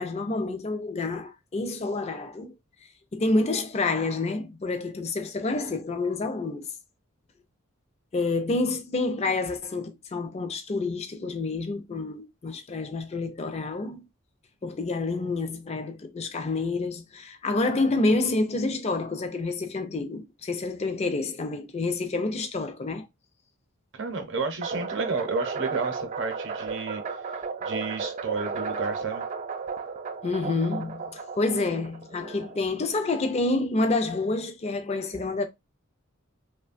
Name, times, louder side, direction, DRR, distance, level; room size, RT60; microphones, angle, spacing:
voice 1, 0.0-2.5 3.1-6.7 8.1-14.0 14.6-23.1 30.2-35.4, left 3 dB, 30° left, 0.4 m, -28 dB
voice 2, 23.9-27.0 27.6-29.2, right 4 dB, 60° right, 0.7 m, -31 dB
sound 1, 24.6-32.9, right 5 dB, 35° right, 0.3 m, -34 dB
3.0 x 2.2 x 2.5 m
head